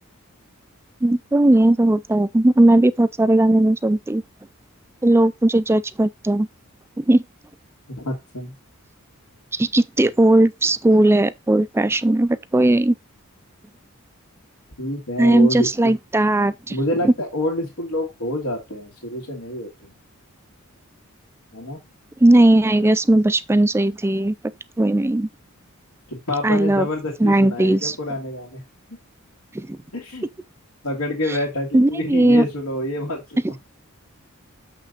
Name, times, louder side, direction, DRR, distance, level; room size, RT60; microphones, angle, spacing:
voice 1, 1.0-4.2 5.0-6.5 7.0-7.2 9.5-12.9 15.2-16.8 17.0-17.1 22.2-24.3 24.8-25.3 26.4-26.9 27.2-28.0 29.5-29.8 31.7-32.4, right 1 dB, 10° right, 0.4 m, -17 dB
voice 2, 7.9-8.5 14.8-16.0 16.7-19.9 21.5-21.8 26.1-28.6 29.9-30.3 30.8-33.6, left 1 dB, 85° left, 2.1 m, -27 dB
6.8 x 5.7 x 3.9 m
head